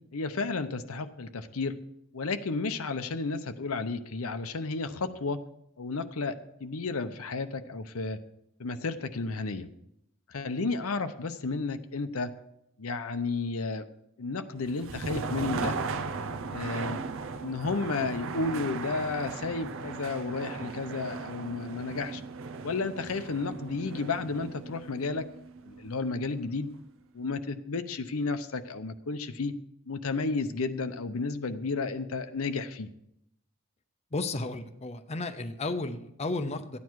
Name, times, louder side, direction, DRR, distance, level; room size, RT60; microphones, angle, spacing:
voice 1, 0.1-1.8 2.1-5.4 5.8-8.2 8.6-9.7 10.3-12.3 12.8-13.8 14.2-15.8 16.5-17.0 17.4-22.2 22.6-25.3 25.6-26.7 27.1-29.5 29.9-32.9, left 3 dB, 75° left, 9 dB, 0.7 m, -32 dB
sound 1, 14.6-26.5, right 4 dB, 65° right, 0.7 m, -37 dB
voice 2, 34.1-36.8, left 2 dB, 30° left, 8 dB, 0.7 m, -33 dB
13.5 x 9.5 x 4.7 m, 0.79 s
head